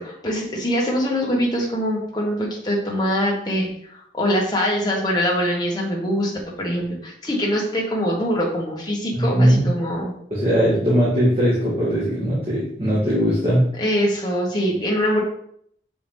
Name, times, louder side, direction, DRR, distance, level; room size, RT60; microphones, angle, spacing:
voice 1, 0.0-3.7 4.1-6.3 6.6-10.2 13.8-15.2, equal, 20° left, -3 dB, 1.6 m, -23 dB
voice 2, 9.1-9.7 10.3-13.7, equal, 30° right, -8 dB, 1.8 m, -19 dB
6.8 x 5.0 x 3.6 m, 0.67 s
head